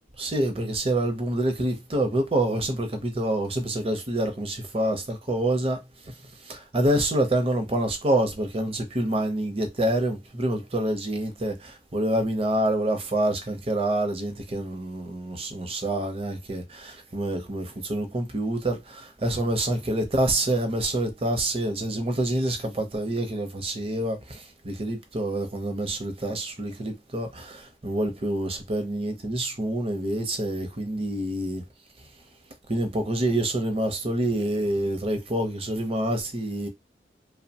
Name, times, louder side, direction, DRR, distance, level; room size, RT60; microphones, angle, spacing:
voice 1, 0.2-5.8 6.5-24.4 24.6-31.6 32.7-36.7, right 1 dB, 30° right, 0.6 m, -27 dB
2.7 x 2.1 x 2.7 m
head